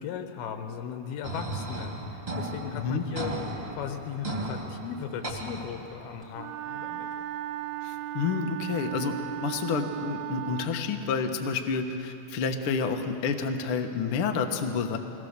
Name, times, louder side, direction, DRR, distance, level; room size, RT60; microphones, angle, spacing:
voice 1, 0.0-3.3 3.7-7.1, left 8 dB, 90° left, 6 dB, 2.9 m, -37 dB
sound 1, 1.2-6.2, right 1 dB, 20° right, 1.9 m, -36 dB
voice 2, 2.7-3.0 7.8-15.0, left 5 dB, 70° left, 5 dB, 1.3 m, -29 dB
Wind instrument woodwind instrument, 6.3-10.8, right 13 dB, 85° right, 2.4 m, -36 dB
22.5 x 17.5 x 6.7 m, 2.9 s
omnidirectional pair, 4.3 m